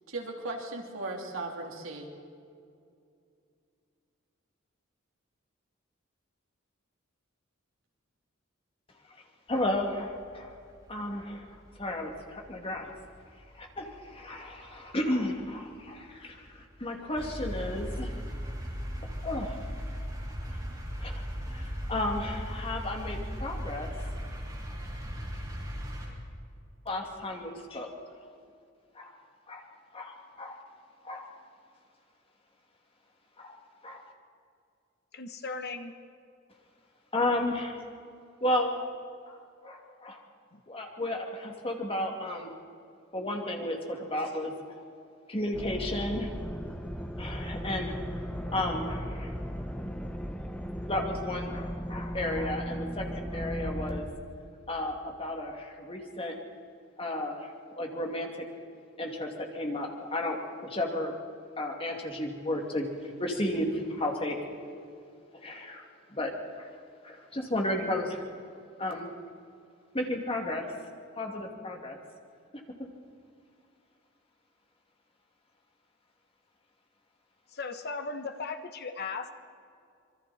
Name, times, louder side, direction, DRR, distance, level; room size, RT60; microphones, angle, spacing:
voice 1, 0.1-2.1, right 2 dB, 80° right, 0 dB, 3.5 m, -37 dB
voice 2, 9.5-10.5 10.9-12.9 13.5-18.1 19.2-19.5 21.0-21.2 21.5-21.6 21.9-24.1 26.9-27.9 28.9-29.1 29.5-29.7 29.9-30.6 31.0-31.3 33.4-33.6 33.8-34.0 37.1-37.8 38.4-38.7 39.3-39.4 39.6-40.2 40.7-42.5 43.1-44.8 45.3-46.3 47.2-47.9 48.5-49.3 50.9-54.1 54.7-56.3 57.0-57.5 57.8-58.4 59.0-61.1 61.6-62.9 63.2-64.4 65.4-65.8 66.1-66.3 66.6-66.7 67.0-68.2 68.8-69.1 69.9-70.7 71.2-72.0 72.8-72.9, left 1 dB, 30° left, 1 dB, 2.7 m, -33 dB
sound 1, 9.5-26.1, equal, 20° right, 5.6 m, -38 dB
voice 3, 35.1-35.9 40.5-40.6 77.5-79.3, left 4 dB, 55° left, 8 dB, 1.3 m, -37 dB
sound 2, 45.5-54.0, equal, 5° left, 1.3 m, -36 dB
26.0 x 23.0 x 4.4 m, 2.4 s
head